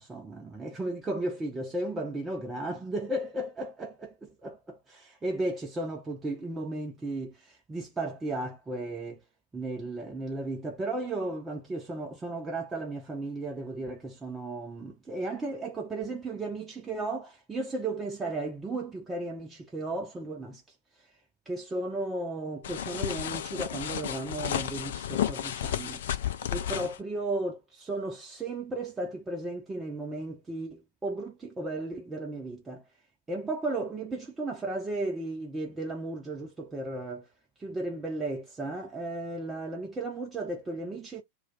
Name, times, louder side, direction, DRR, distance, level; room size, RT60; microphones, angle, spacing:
voice 1, 0.0-9.2 9.5-21.1 21.5-26.0 26.5-32.8 33.3-37.3 37.6-41.2, right 2 dB, 15° right, 0.6 m, -35 dB
sound 1, 22.6-27.0, left 10 dB, 60° left, 0.4 m, -32 dB
2.3 x 2.3 x 3.9 m
figure-of-eight pair, 90°, 0 cm